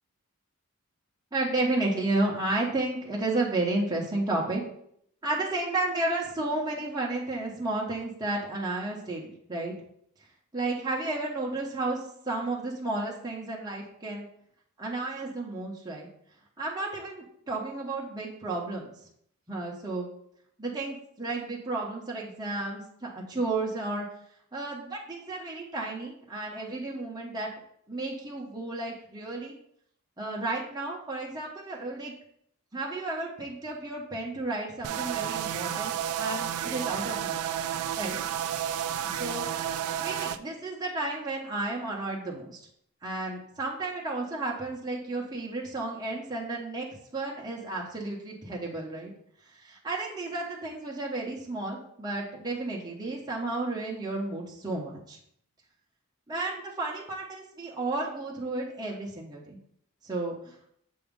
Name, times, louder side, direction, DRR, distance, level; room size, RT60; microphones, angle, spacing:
voice 1, 1.3-4.6 5.2-9.7 10.5-14.3 14.8-16.1 16.6-18.9 19.5-20.1 20.6-24.1 24.5-27.5 27.9-29.6 30.2-32.1 32.7-37.4 38.0-38.2 39.0-39.5 40.0-42.6 43.0-46.9 47.1-49.1 49.5-55.2 56.3-59.6 60.0-60.7, right 2 dB, 20° right, -4 dB, 0.9 m, -32 dB
sound 1, 34.8-40.4, right 9 dB, 85° right, 0.4 m, -31 dB
7.0 x 2.8 x 5.2 m, 0.69 s
head